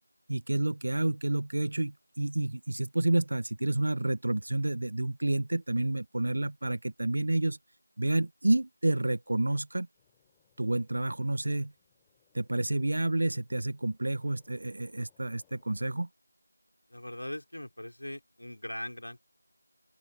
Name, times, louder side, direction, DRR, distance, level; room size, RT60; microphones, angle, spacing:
voice 1, 0.3-7.6 8.0-9.9 10.6-11.7 12.3-16.1, right 2 dB, 50° right, 1.2 m, -29 dB
sound 1, 9.9-15.9, left 18 dB, 5° left, 4.9 m, -73 dB
voice 2, 16.9-19.2, left 1 dB, 75° left, 5.0 m, -40 dB
open air
figure-of-eight pair, 170°, 0 cm